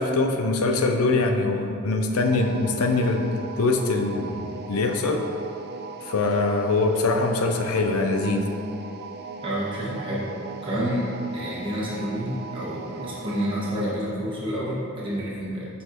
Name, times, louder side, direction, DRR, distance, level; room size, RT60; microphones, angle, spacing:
voice 1, 0.0-3.3 3.6-5.2 6.0-8.4, left 3 dB, 90° left, 4 dB, 0.6 m, -23 dB
sound 1, 2.2-14.0, right 4 dB, 50° right, 0.4 m, -39 dB
voice 2, 9.4-10.3 10.6-15.7, equal, 25° right, -8 dB, 1.6 m, -29 dB
7.7 x 5.5 x 2.9 m, 2.5 s
head